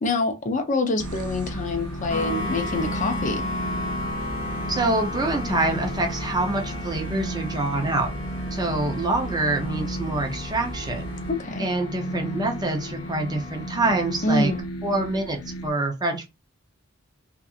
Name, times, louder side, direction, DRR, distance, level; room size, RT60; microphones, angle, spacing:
voice 1, 0.0-3.5 11.3-11.7 14.2-14.6, left 2 dB, 40° left, 0.5 m, -26 dB
sound 1, 1.0-15.7, equal, 85° left, 0.5 m, -35 dB
sound 2, 1.0-11.3, right 2 dB, 80° right, 0.4 m, -38 dB
sound 3, 2.1-14.6, left 2 dB, 65° left, 1.4 m, -35 dB
voice 2, 4.7-8.1 8.5-11.1 11.6-14.5 14.8-15.4 15.6-16.3, right 2 dB, 20° right, 0.6 m, -26 dB
2.7 x 2.5 x 2.4 m
head